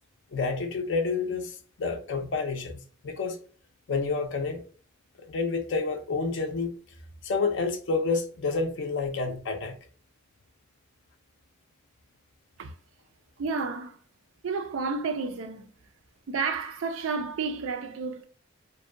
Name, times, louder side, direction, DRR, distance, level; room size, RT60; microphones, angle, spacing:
voice 1, 0.3-3.4 3.9-4.6 5.3-6.8 7.2-9.7, left 4 dB, 60° left, 0.4 m, -29 dB
voice 2, 13.4-14.0 14.4-15.7 16.3-18.3, right 4 dB, 75° right, 0.4 m, -31 dB
2.6 x 2.1 x 2.4 m
head